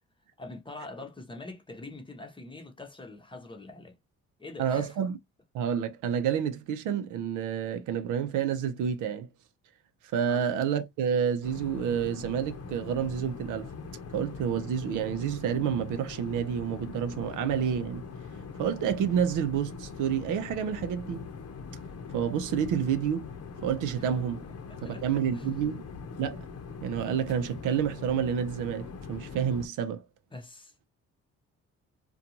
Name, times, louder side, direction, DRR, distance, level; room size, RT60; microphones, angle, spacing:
voice 1, 0.4-4.0 4.4-5.0 10.3-10.4 24.0-24.1 24.7-25.0 25.3-25.5 30.3-30.7, left 2 dB, 15° left, 0.8 m, -44 dB
voice 2, 4.6-5.2 5.5-9.3 10.1-13.7 14.1-18.0 18.6-21.3 22.1-23.3 23.6-24.4 24.8-25.8 26.2-26.4 26.8-30.0, right 8 dB, 85° right, 0.6 m, -29 dB
sound 1, 11.4-29.7, left 5 dB, 55° left, 0.7 m, -42 dB
2.5 x 2.3 x 2.8 m
cardioid pair, 90°, 30 cm